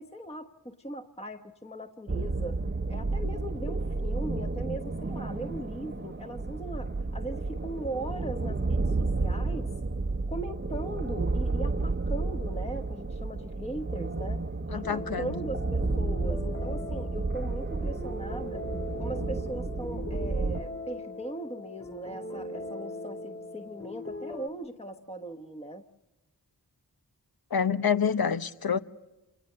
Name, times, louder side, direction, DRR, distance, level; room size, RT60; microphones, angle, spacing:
voice 1, 0.0-2.6 2.9-9.7 10.3-14.4 14.7-18.6 19.0-25.8, right 1 dB, 15° left, 1.2 m, -39 dB
sound 1, 2.1-20.6, right 3 dB, 30° right, 0.9 m, -31 dB
voice 2, 14.7-15.3 27.5-28.8, left 6 dB, 65° left, 0.9 m, -27 dB
sound 2, 14.8-24.5, left 2 dB, 40° left, 2.9 m, -40 dB
27.5 x 19.5 x 6.7 m
wide cardioid pair, 50°, 39 cm